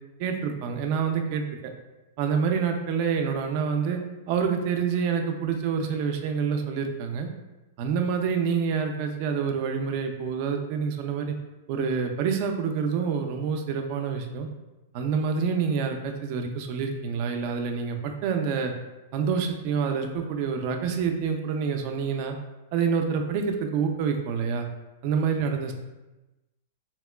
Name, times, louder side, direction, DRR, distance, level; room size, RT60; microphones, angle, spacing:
voice 1, 0.2-1.4 2.2-4.0 4.3-7.3 7.8-11.3 11.7-14.5 14.9-18.7 19.1-22.4 22.7-24.7 25.0-25.7, right 6 dB, 50° right, 4 dB, 0.4 m, -27 dB
2.9 x 2.9 x 2.2 m, 1.1 s
hypercardioid pair, 135°, 0 cm